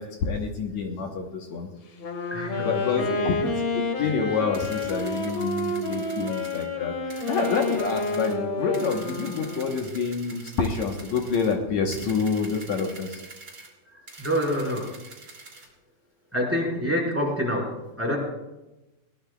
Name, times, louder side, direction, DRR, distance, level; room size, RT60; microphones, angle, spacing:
voice 1, 0.0-1.7 2.6-13.2, left 5 dB, 65° left, 2 dB, 1.8 m, -28 dB
Wind instrument woodwind instrument, 1.9-10.0, left 2 dB, 50° left, 2.3 m, -29 dB
voice 2, 2.3-3.5 14.2-14.9 16.3-18.2, equal, 5° right, -4 dB, 4.4 m, -27 dB
sound 1, 4.5-6.7 7.1-8.4 8.7-11.6 11.9-13.7 14.1-15.7, right 3 dB, 30° right, 2.7 m, -45 dB
20.5 x 18.0 x 2.3 m, 1.0 s
omnidirectional pair, 4.6 m